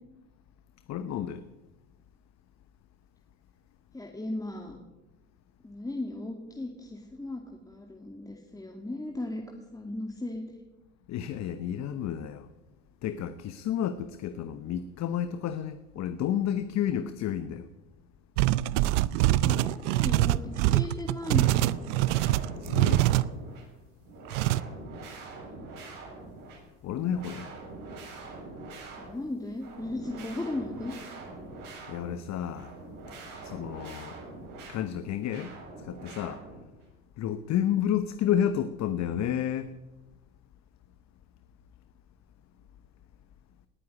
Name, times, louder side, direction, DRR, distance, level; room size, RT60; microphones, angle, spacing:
voice 1, 0.9-1.4 11.1-12.5 13.0-17.7 22.6-23.0 26.8-27.5 31.9-32.7 33.4-34.1 34.7-35.5 35.8-36.4 37.2-39.7, left 10 dB, 50° left, 12 dB, 1.0 m, -31 dB
voice 2, 3.9-4.8 5.6-10.6 19.1-21.7 25.2-25.6 29.0-31.0, left 2 dB, 10° left, 1 dB, 2.3 m, -37 dB
sound 1, 18.4-23.3 24.3-24.6, right 16 dB, 75° right, 0.6 m, -24 dB
sound 2, 20.1-20.8 21.2-23.6 24.0-26.6 26.9-34.8 35.2-36.8, right 3 dB, 60° right, 7.6 m, -44 dB
19.0 x 7.6 x 9.8 m, 1.1 s
hypercardioid pair, 85°, 36 cm